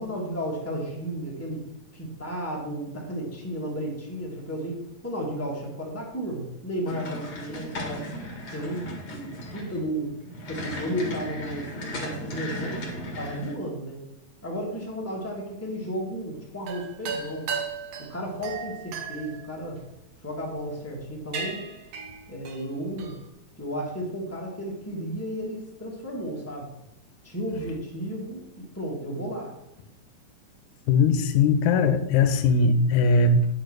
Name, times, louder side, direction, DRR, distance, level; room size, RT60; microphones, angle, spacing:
voice 1, 0.0-1.6 1.9-8.1 8.5-10.1 10.5-12.8 13.1-14.0 14.4-17.5 18.0-19.8 20.2-21.7 22.3-23.1 23.6-26.7 27.2-29.5, equal, 10° left, -3 dB, 0.7 m, -33 dB
sound 1, 6.9-13.5, left 1 dB, 40° left, 1.6 m, -36 dB
sound 2, 16.6-20.3 20.9-21.0 21.3-23.3, right 5 dB, 80° right, 1.4 m, -36 dB
voice 2, 30.9-33.5, left 3 dB, 75° left, 8 dB, 2.0 m, -20 dB
9.7 x 4.8 x 6.2 m, 0.87 s
omnidirectional pair, 4.1 m